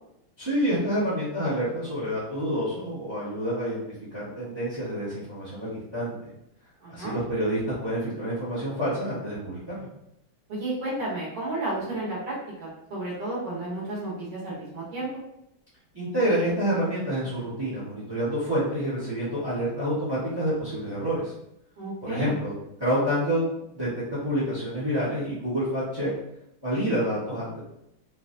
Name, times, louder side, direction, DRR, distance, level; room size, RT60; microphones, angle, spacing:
voice 1, 0.4-3.8 4.1-6.1 6.9-9.9 15.9-21.3 22.0-22.5 22.8-23.4 23.7-26.1 26.6-27.6, equal, 15° right, -11 dB, 1.1 m, -28 dB
voice 2, 6.8-7.2 10.5-15.1 21.8-22.3, right 2 dB, 85° right, -7 dB, 2.3 m, -32 dB
4.8 x 2.5 x 2.5 m, 0.81 s
omnidirectional pair, 2.3 m